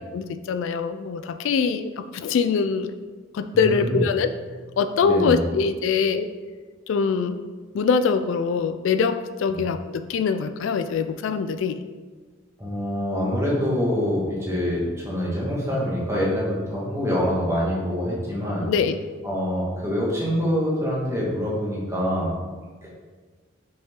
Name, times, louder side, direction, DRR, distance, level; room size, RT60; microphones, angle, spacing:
voice 1, 0.1-2.9 3.3-4.3 4.8-6.3 6.9-7.5 7.7-11.8 18.6-19.0, left 5 dB, 70° left, 10 dB, 0.3 m, -23 dB
voice 2, 3.5-4.0 5.0-5.5 9.5-9.6 12.6-18.7 19.2-22.4 22.8-22.9, equal, 15° right, -6 dB, 1.6 m, -25 dB
5.8 x 5.3 x 3.7 m, 1.4 s
head